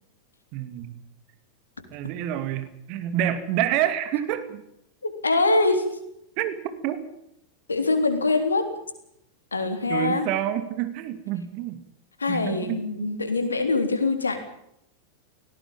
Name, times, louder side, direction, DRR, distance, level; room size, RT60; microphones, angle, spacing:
voice 1, 0.5-1.0 1.9-4.6 6.4-6.6 6.8-7.0 9.9-11.8 12.3-12.8, right 11 dB, 45° right, 10 dB, 2.5 m, -27 dB
voice 2, 5.0-6.0 7.7-8.7 9.5-10.3 12.2-14.4, left 3 dB, 75° left, 7 dB, 3.6 m, -23 dB
18.5 x 17.0 x 9.0 m, 0.78 s
figure-of-eight pair, 90°, 0 cm